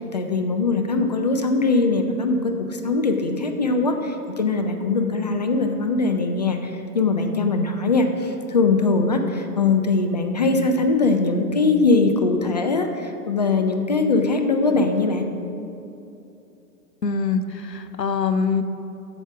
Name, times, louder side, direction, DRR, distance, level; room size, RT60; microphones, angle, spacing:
voice 1, 0.1-15.3, left 3 dB, 30° left, 5 dB, 0.3 m, -21 dB
voice 2, 17.0-18.6, left 5 dB, 90° left, 10 dB, 0.8 m, -23 dB
8.2 x 7.0 x 6.1 m, 2.8 s
figure-of-eight pair, 110°, 48 cm